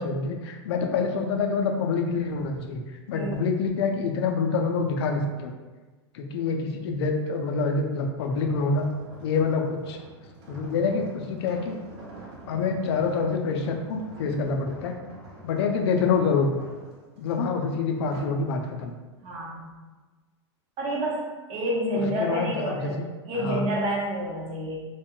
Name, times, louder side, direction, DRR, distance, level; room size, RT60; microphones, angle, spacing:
voice 1, 0.0-2.8 3.1-5.5 6.1-8.9 9.2-10.0 10.5-11.8 12.5-15.0 15.4-16.5 17.2-18.9 21.9-22.9 23.4-23.6, left 4 dB, 70° left, 3 dB, 0.5 m, -26 dB
voice 2, 3.1-3.5 19.2-19.7 20.8-24.9, equal, 40° right, -4 dB, 0.8 m, -29 dB
sound 1, 8.2-18.5 18.9-19.2, right 2 dB, 70° right, 0.9 m, -47 dB
2.3 x 2.1 x 3.6 m, 1.3 s
hypercardioid pair, 105°, 14 cm